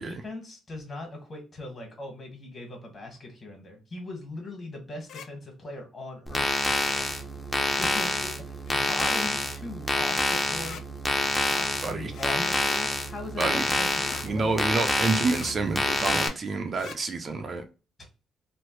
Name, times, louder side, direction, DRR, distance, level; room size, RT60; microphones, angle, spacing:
voice 1, 0.0-6.5 7.8-10.8 11.4-14.7, left 2 dB, 40° left, 1.5 m, -40 dB
sound 1, 5.0-5.3 6.8-7.1 8.7-9.0 10.6-10.8 12.1-12.4 14.0-14.3 15.3-15.6 16.7-17.0, left 7 dB, 70° left, 0.3 m, -43 dB
sound 2, 6.3-16.3, left 1 dB, 15° left, 0.6 m, -27 dB
voice 2, 14.2-17.6, right 3 dB, 45° right, 0.5 m, -28 dB
3.1 x 2.1 x 3.0 m
cardioid pair, 90°, 0 cm